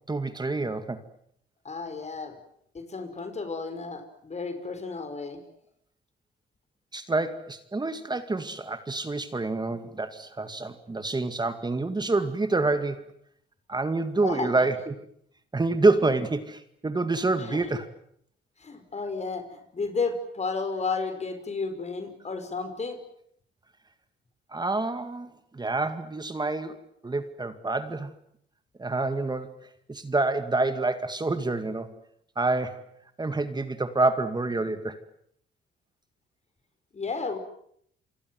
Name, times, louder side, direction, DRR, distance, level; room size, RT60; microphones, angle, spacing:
voice 1, 0.1-1.0 6.9-13.1 13.7-15.1 15.5-17.9 24.5-28.1 28.8-29.6 29.9-31.9 32.4-32.8 33.2-35.0, right 3 dB, 20° right, 9 dB, 2.1 m, -27 dB
voice 2, 1.6-2.4 2.7-5.4 14.2-14.5 17.4-17.7 18.6-23.0 36.9-37.4, left 4 dB, 35° left, 8 dB, 5.3 m, -32 dB
28.5 x 24.0 x 7.8 m, 0.70 s
cardioid pair, 90°, 20 cm